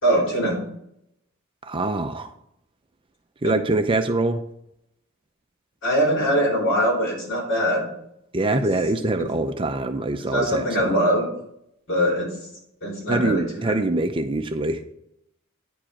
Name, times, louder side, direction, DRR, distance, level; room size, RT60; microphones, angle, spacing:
voice 1, 0.0-0.6 3.4-3.5 5.8-7.8 8.5-8.6 10.3-11.3 11.9-12.3 12.8-13.7, equal, 60° left, -2 dB, 4.1 m, -22 dB
voice 2, 1.6-2.3 3.4-4.4 8.3-10.9 13.1-14.8, right 2 dB, 25° right, 7 dB, 0.5 m, -24 dB
9.8 x 5.0 x 5.8 m, 0.76 s
head